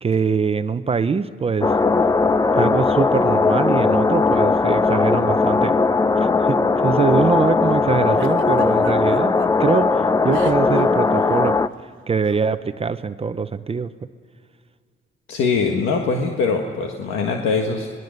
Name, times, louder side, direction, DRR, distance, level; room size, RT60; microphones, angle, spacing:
voice 1, 0.0-1.8 2.5-5.8 6.2-11.6 12.1-13.9, right 5 dB, 30° right, 11 dB, 0.7 m, -23 dB
sound 1, 1.6-11.7, left 4 dB, 20° left, 0.6 m, -18 dB
Giggle, 8.2-9.5 10.3-10.8 11.1-11.3 12.2-12.5, right 12 dB, 85° right, 1.0 m, -36 dB
voice 2, 15.3-17.9, left 4 dB, 90° left, 2 dB, 1.7 m, -22 dB
26.0 x 20.5 x 6.6 m, 2.2 s
cardioid pair, 90°, 20 cm